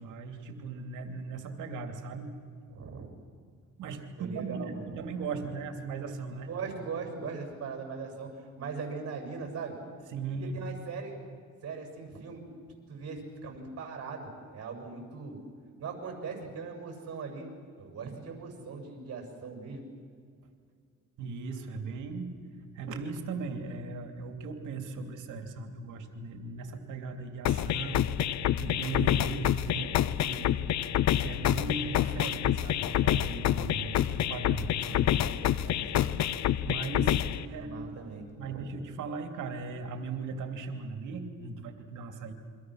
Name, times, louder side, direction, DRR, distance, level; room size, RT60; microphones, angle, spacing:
voice 1, 0.0-2.3 3.8-6.5 10.1-10.7 21.2-22.3 22.7-30.6 31.2-35.2 36.6-37.2 37.5-37.9 38.4-42.3, right 4 dB, 85° right, 5 dB, 2.8 m, -38 dB
voice 2, 2.7-3.1 4.2-5.0 5.4-5.6 6.5-9.8 10.4-11.1 11.6-12.4 12.9-15.4 15.8-17.5 17.8-19.9 29.7-30.0 35.2-36.2 37.5-38.9, right 5 dB, 55° right, 3 dB, 7.2 m, -40 dB
sound 1, 27.5-37.5, left 11 dB, 65° left, 0.8 m, -28 dB
28.5 x 24.0 x 6.4 m, 2.1 s
cardioid pair, 90°, 30 cm